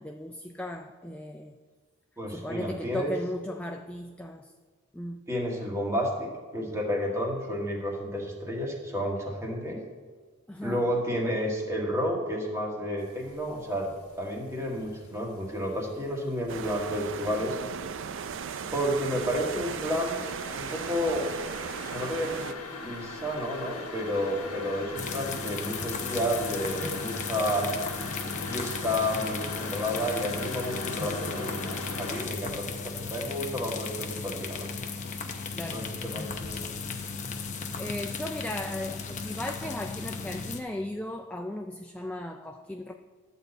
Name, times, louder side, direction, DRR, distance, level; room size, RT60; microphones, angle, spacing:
voice 1, 0.0-1.6 2.3-4.5 4.9-5.2 10.5-10.8 35.6-35.9 37.8-42.9, left 1 dB, 5° left, 4 dB, 0.3 m, -36 dB
voice 2, 2.2-3.1 5.3-9.8 10.6-17.6 18.7-21.3 21.8-22.5 22.8-27.7 28.4-34.7 35.7-36.7, equal, 15° right, -1 dB, 1.7 m, -31 dB
sound 1, 13.2-13.6 13.9-15.5 15.8-32.2, left 2 dB, 90° left, 1.4 m, -40 dB
sound 2, 16.5-22.5, right 6 dB, 60° right, 0.4 m, -36 dB
sound 3, 25.0-40.6, left 5 dB, 35° left, 0.7 m, -36 dB
11.5 x 4.2 x 7.9 m, 1.5 s
head